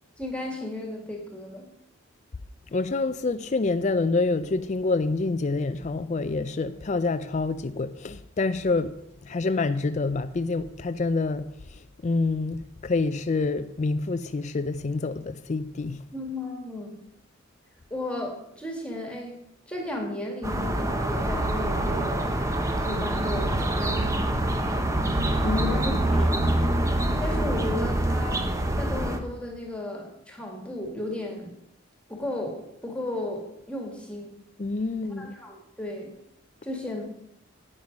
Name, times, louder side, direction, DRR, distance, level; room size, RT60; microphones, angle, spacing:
voice 1, 0.2-1.7 16.1-17.0 17.9-19.4 19.7-22.3 22.8-24.4 25.6-26.6 27.2-31.5 32.1-34.3 35.2-36.1 36.6-37.1, left 1 dB, 5° left, 2.0 m, -35 dB
voice 2, 2.7-9.0 9.2-16.1 25.4-26.0 34.6-35.3, left 3 dB, 35° left, 0.4 m, -27 dB
sound 1, 20.4-29.2, right 1 dB, 15° right, 0.9 m, -25 dB
10.5 x 9.0 x 5.3 m
head